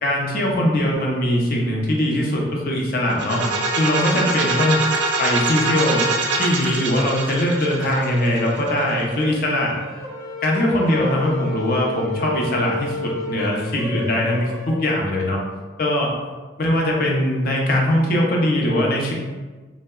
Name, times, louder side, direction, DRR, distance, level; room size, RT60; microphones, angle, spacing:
voice 1, 0.0-3.4 3.8-4.8 5.2-6.1 6.3-9.8 10.4-15.4 15.8-16.2 16.6-19.1, left 1 dB, 50° left, -1 dB, 0.5 m, -21 dB
sound 1, 3.1-8.9, right 3 dB, 75° right, 0.4 m, -24 dB
sound 2, 7.3-14.7, left 1 dB, 15° right, 0.4 m, -32 dB
3.5 x 2.0 x 2.2 m, 1.3 s
head